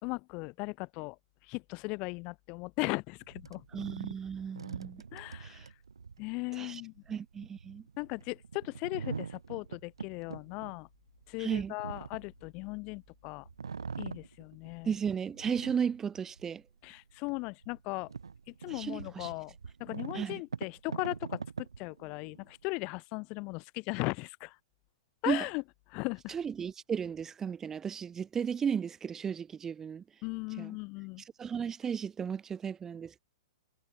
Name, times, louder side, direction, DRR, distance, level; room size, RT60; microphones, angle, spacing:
voice 1, 0.0-1.2 1.5-3.6 5.1-5.7 6.2-6.9 8.0-10.9 11.3-13.5 14.0-14.9 16.8-18.1 18.5-19.5 19.8-24.6 25.2-25.6 25.9-26.3 30.2-31.2, left 28 dB, 40° left, 2.7 m, -37 dB
sound 1, 3.2-13.1 13.4-14.9 15.3-16.6 17.1-17.2 17.6-22.7, right 5 dB, 75° right, 3.0 m, -43 dB
voice 2, 3.7-5.0 5.4-5.7 6.6-6.8 7.1-7.8 11.4-11.7 14.8-16.6 18.7-19.3 20.1-20.4 25.3-25.4 26.3-30.0 30.6-30.7 31.4-33.2, right 7 dB, 15° right, 2.7 m, -34 dB
figure-of-eight pair, 110°, 3 cm